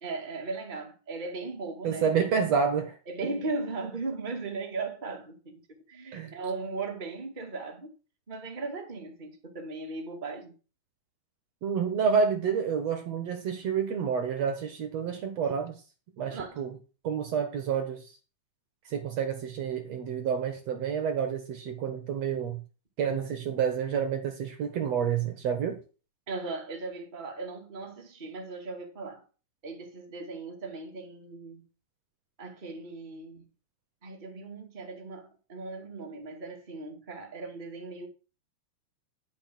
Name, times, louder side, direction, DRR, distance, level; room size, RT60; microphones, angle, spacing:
voice 1, 0.0-2.3 3.1-5.6 5.9-7.9 8.3-10.5 16.3-16.6 26.3-29.2 29.6-31.7 32.4-33.4 34.0-38.1, right 3 dB, 15° right, 2.0 m, -37 dB
voice 2, 1.8-2.9 6.1-6.4 11.6-15.7 16.2-16.7 17.0-18.0 18.9-22.6 23.0-25.8, right 7 dB, 60° right, 2.3 m, -29 dB
11.5 x 5.4 x 6.2 m
omnidirectional pair, 3.6 m